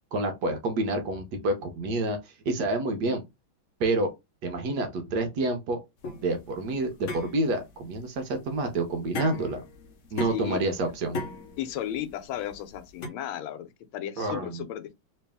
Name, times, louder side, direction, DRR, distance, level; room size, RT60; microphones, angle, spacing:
voice 1, 0.1-3.2 3.8-4.1 4.4-5.8 6.2-9.6 10.1-11.2 14.2-14.6, right 2 dB, 65° right, 1.2 m, -28 dB
sound 1, 6.0-13.1, left 3 dB, 60° left, 0.8 m, -38 dB
voice 2, 10.3-10.6 11.6-14.9, left 11 dB, 85° left, 1.4 m, -34 dB
3.2 x 3.0 x 3.4 m
omnidirectional pair, 2.2 m